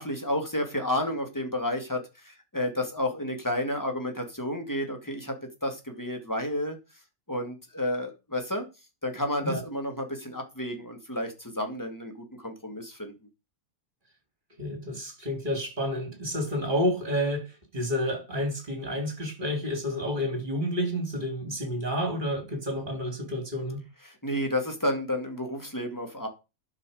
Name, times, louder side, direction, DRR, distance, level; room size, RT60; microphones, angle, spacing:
voice 1, 0.0-6.8 7.3-8.7 9.0-13.1 24.0-26.3, left 1 dB, 15° left, 2.4 m, -31 dB
voice 2, 14.6-23.8, equal, 35° right, 3.4 m, -30 dB
11.5 x 6.0 x 5.1 m
omnidirectional pair, 1.4 m